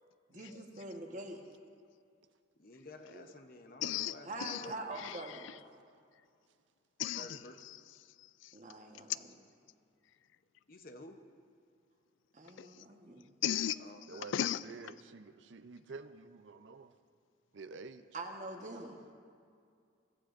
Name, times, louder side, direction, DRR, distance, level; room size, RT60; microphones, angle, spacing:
voice 1, 0.3-1.4 4.2-5.5 8.5-9.2 12.3-13.3 18.1-19.0, right 2 dB, 40° right, 1.2 m, -44 dB
voice 2, 2.6-5.0 7.2-7.6 10.7-11.2 13.8-14.3, left 2 dB, 45° left, 0.8 m, -52 dB
voice 3, 3.8-4.6 5.0-5.5 7.0-7.8 8.4-8.5 12.6-12.7 13.4-13.8 14.1-14.6, left 10 dB, 75° left, 0.4 m, -36 dB
voice 4, 14.6-16.9 17.5-18.1, right 4 dB, 70° right, 0.5 m, -49 dB
23.0 x 14.5 x 2.6 m
head